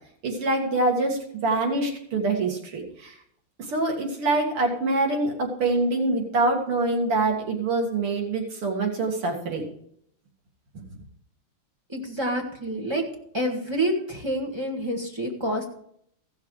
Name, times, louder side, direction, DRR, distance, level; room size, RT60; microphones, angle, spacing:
voice 1, 0.2-3.1 3.7-9.6, right 2 dB, 80° right, 1 dB, 3.0 m, -25 dB
voice 2, 11.9-13.0 13.3-15.6, right 1 dB, 15° right, 1 dB, 1.5 m, -28 dB
15.5 x 6.5 x 4.8 m, 0.69 s
omnidirectional pair, 2.4 m